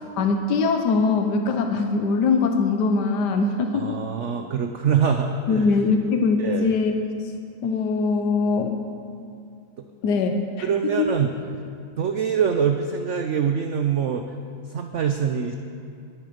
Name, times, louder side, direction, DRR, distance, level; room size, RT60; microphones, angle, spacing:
voice 1, 0.2-4.0 5.5-7.0 7.6-8.8 10.0-10.7 11.0-11.1, left 4 dB, 75° left, 5 dB, 1.5 m, -22 dB
voice 2, 3.7-5.7 6.4-6.7 10.6-11.6 12.0-14.2 14.7-15.5, right 7 dB, 60° right, 6 dB, 0.8 m, -24 dB
22.0 x 9.9 x 5.2 m, 2.4 s
omnidirectional pair, 1.8 m